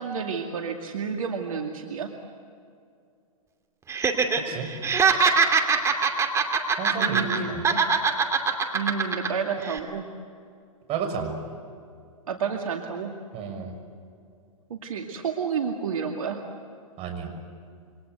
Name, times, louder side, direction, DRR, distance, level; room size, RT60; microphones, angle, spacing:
voice 1, 0.0-2.1 7.0-7.8 8.7-10.1 12.3-13.1 14.7-16.4, right 6 dB, 70° right, 3 dB, 2.4 m, -30 dB
Laughter, 3.9-4.4 4.7-7.4 7.6-9.3 9.6-9.8, right 5 dB, 15° right, 2.8 m, -22 dB
voice 2, 6.8-7.7 10.9-11.4 13.3-13.8 17.0-17.3, right 6 dB, 35° right, 4 dB, 6.4 m, -32 dB
28.0 x 25.0 x 8.1 m, 2.4 s
hypercardioid pair, 110°, 18 cm